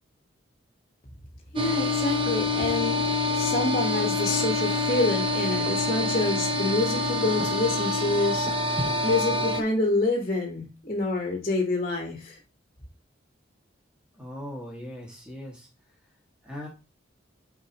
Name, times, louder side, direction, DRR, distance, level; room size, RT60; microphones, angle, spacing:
voice 1, 1.5-3.0 3.3-8.5 9.0-12.4, left 2 dB, 35° left, 0 dB, 1.5 m, -27 dB
sound 1, 1.6-9.6, left 2 dB, 25° right, 0.8 m, -26 dB
voice 2, 14.1-15.7 16.4-16.7, left 1 dB, 5° right, -3 dB, 2.1 m, -39 dB
9.1 x 4.5 x 3.1 m, 0.28 s
head